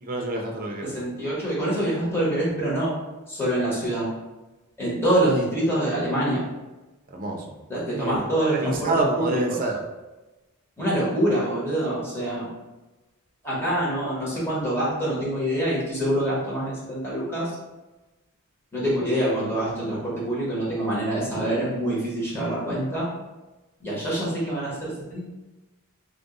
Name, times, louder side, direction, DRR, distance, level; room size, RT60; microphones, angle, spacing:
voice 1, 0.0-1.0 7.1-7.5 7.9-9.8, right 2 dB, 40° right, 1 dB, 0.6 m, -27 dB
voice 2, 0.9-2.9 3.3-4.1 4.8-6.4 7.7-9.4 10.8-12.4 13.4-17.5 18.7-23.1 23.8-25.2, right 1 dB, 10° left, -8 dB, 1.4 m, -25 dB
3.6 x 2.5 x 3.8 m, 1.1 s
head